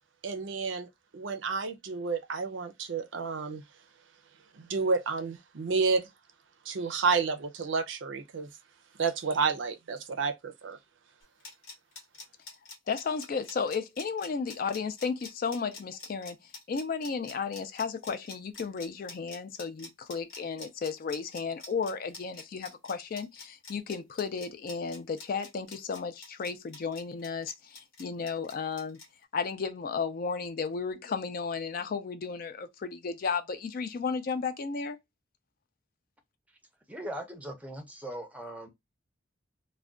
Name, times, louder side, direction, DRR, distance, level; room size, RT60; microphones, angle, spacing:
voice 1, 0.2-3.6 4.6-6.1 6.7-8.5 9.0-10.8, right 4 dB, 70° right, 0.5 m, -30 dB
sound 1, 11.2-29.1, left 3 dB, 75° left, 0.9 m, -47 dB
voice 2, 12.9-16.4 16.7-29.0 29.3-35.0, left 5 dB, 45° left, 0.3 m, -34 dB
voice 3, 36.9-38.7, right 1 dB, 5° right, 0.6 m, -39 dB
2.3 x 2.2 x 3.6 m
head